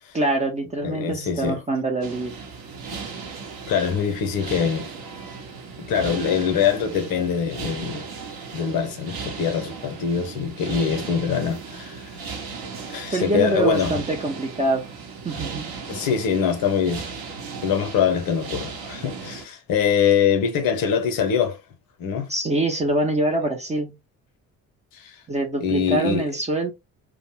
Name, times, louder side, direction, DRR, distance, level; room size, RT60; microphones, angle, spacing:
voice 1, 0.1-2.3 13.1-14.9 15.2-15.7 22.3-23.9 25.3-26.7, right 2 dB, 15° right, 0.5 m, -24 dB
voice 2, 0.8-1.6 3.7-4.9 5.8-8.0 8.5-12.1 12.9-13.9 15.9-17.1 17.6-21.6 22.0-22.3 24.9-25.1 25.6-26.3, left 7 dB, 45° left, 0.7 m, -23 dB
sound 1, 2.0-19.5, right 5 dB, 50° right, 0.8 m, -36 dB
2.5 x 2.0 x 3.0 m
figure-of-eight pair, 45°, 48 cm